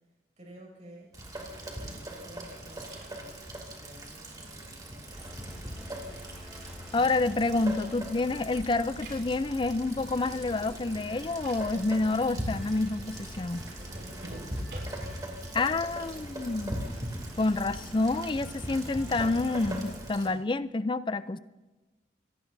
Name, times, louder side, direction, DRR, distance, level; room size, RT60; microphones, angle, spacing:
voice 1, 0.4-1.1 1.7-6.3 13.8-15.0, equal, 40° right, 0 dB, 6.1 m, -52 dB
Rain, 1.1-20.3, right 1 dB, 20° right, 2.6 m, -41 dB
sound 1, 1.1-3.7 4.1-5.9 6.2-16.9, right 2 dB, 70° right, 6.2 m, -53 dB
sound 2, 5.1-20.0, equal, 5° right, 4.2 m, -46 dB
voice 2, 6.9-13.7 15.5-16.8 17.4-21.4, left 3 dB, 25° left, 15 dB, 0.4 m, -28 dB
24.5 x 18.5 x 2.7 m, 1.1 s
head